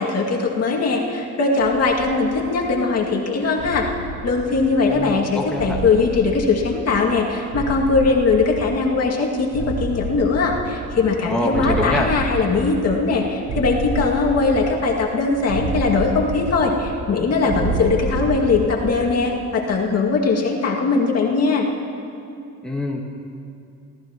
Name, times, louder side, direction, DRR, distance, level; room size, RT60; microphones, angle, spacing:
voice 1, 0.0-3.9 4.2-21.7, left 4 dB, 55° left, -2 dB, 2.2 m, -20 dB
sound 1, 1.6-2.9 3.6-5.1 5.6-7.2 7.5-9.1 9.5-11.2 11.5-13.2 13.5-15.1 15.5-17.2 17.5-19.1, right 2 dB, 70° right, 4.0 m, -30 dB
voice 2, 4.9-5.8 11.3-12.1 22.6-23.0, left 1 dB, 5° left, -2 dB, 2.0 m, -24 dB
26.5 x 17.0 x 3.0 m, 2.6 s
cardioid pair, 90°, 30 cm